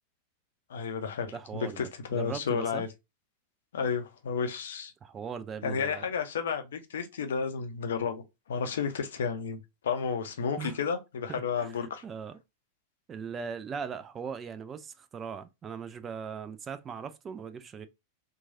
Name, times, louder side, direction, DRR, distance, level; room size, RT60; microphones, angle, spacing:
voice 1, 0.7-2.9 3.7-4.9 5.6-8.2 8.5-12.0, left 6 dB, 65° left, 0.5 m, -32 dB
voice 2, 1.3-2.8 5.0-6.1 10.6-10.8 11.3-12.4 13.1-17.9, right 6 dB, 25° right, 0.3 m, -39 dB
3.0 x 2.3 x 2.6 m
figure-of-eight pair, 90°, 0 cm